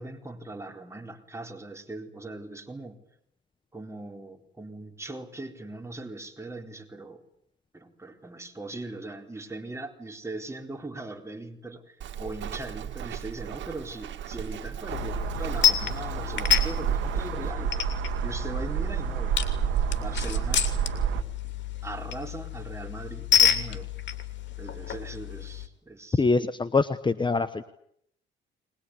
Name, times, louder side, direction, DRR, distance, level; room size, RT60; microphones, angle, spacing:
voice 1, 0.0-3.0 3.7-7.2 7.7-17.8 18.2-19.4 20.0-20.7 21.4-21.5 21.8-23.9 24.6-26.3, right 2 dB, 15° right, 4 dB, 4.2 m, -40 dB
Walk footsteps, 12.0-17.5, right 9 dB, 70° right, 2.3 m, -37 dB
sound 1, 14.9-25.7, left 9 dB, 65° left, 2.9 m, -29 dB
sound 2, 14.9-21.2, right 11 dB, 90° right, 1.5 m, -29 dB
voice 2, 26.2-27.6, left 3 dB, 25° left, 12 dB, 1.2 m, -24 dB
21.5 x 21.5 x 9.9 m, 0.73 s
cardioid pair, 90°, 20 cm